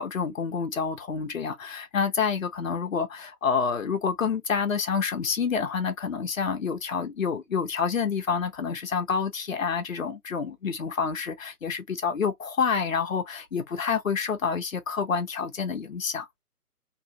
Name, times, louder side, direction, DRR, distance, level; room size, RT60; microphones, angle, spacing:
voice 1, 0.0-16.4, left 6 dB, 60° left, 1.0 m, -28 dB
3.1 x 2.6 x 2.9 m
figure-of-eight pair, 140°, 46 cm